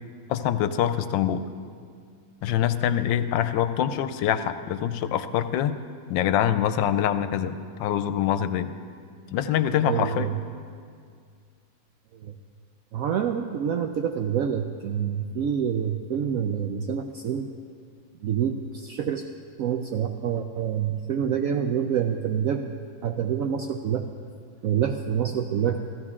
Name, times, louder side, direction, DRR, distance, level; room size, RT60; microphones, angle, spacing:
voice 1, 0.3-1.5 2.4-5.8 6.1-8.7 9.3-10.3, left 10 dB, 80° left, 11 dB, 1.3 m, -25 dB
voice 2, 9.8-10.4 12.1-12.4 12.9-17.5 18.2-19.3 19.6-22.7 23.0-24.1 24.6-25.8, right 8 dB, 75° right, 5 dB, 0.7 m, -27 dB
15.0 x 14.5 x 3.7 m, 2.2 s
omnidirectional pair, 2.0 m